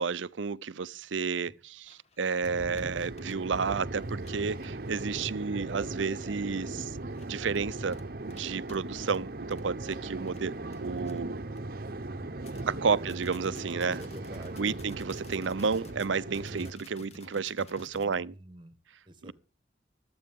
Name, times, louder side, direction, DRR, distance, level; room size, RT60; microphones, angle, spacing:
voice 1, 0.0-7.0 7.3-8.0 8.2-10.5 10.8-11.4 12.7-14.0 14.6-18.3 19.2-19.3, right 5 dB, 90° right, 0.6 m, -31 dB
sound 1, 0.8-0.9 1.3-1.6 1.9-5.1 5.7-5.8 6.2-6.4 7.0-11.6 12.0-12.1 12.4-18.2, left 2 dB, 35° left, 1.5 m, -52 dB
sound 2, 2.4-16.7, right 2 dB, 50° right, 0.9 m, -38 dB
voice 2, 13.8-14.8 18.0-18.8 19.1-19.3, right 1 dB, 25° right, 1.4 m, -47 dB
23.5 x 8.7 x 3.6 m
head